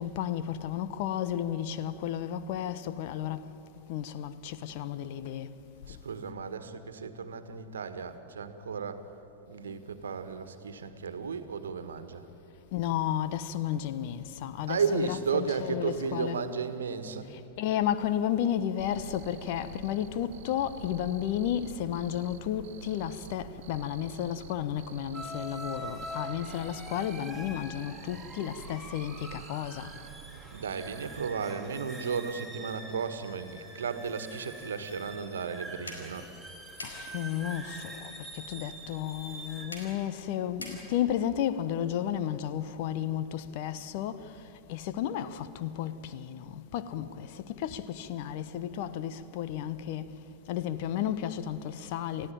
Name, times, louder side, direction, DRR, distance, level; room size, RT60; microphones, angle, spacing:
voice 1, 0.0-3.5 3.9-5.6 5.9-6.0 12.7-16.4 17.6-29.9 36.8-50.2 50.5-52.3, left 10 dB, 50° left, 1.0 m, -33 dB
voice 2, 5.9-9.0 9.5-12.3 14.7-17.3 30.5-36.3, right 5 dB, 65° right, 1.5 m, -34 dB
Cricket, 18.8-31.3, right 11 dB, 50° right, 0.8 m, -49 dB
sound 1, 25.1-39.6, right 1 dB, 5° left, 4.7 m, -45 dB
sound 2, 35.8-41.3, left 1 dB, 75° left, 4.7 m, -48 dB
28.5 x 15.5 x 9.1 m
figure-of-eight pair, 90°, 0 cm